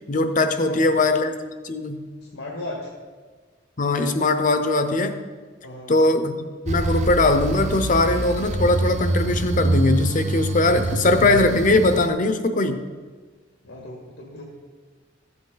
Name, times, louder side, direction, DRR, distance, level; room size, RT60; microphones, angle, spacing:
voice 1, 0.1-1.3 1.6-2.1 3.8-5.2 5.9-12.8, left 2 dB, 45° left, 9 dB, 0.7 m, -20 dB
voice 2, 2.2-2.9 5.6-6.0 13.6-14.4, left 1 dB, 90° left, -2 dB, 1.7 m, -36 dB
sound 1, 6.7-12.1, right 2 dB, 40° right, 0.5 m, -25 dB
14.5 x 7.8 x 3.9 m, 1.5 s
head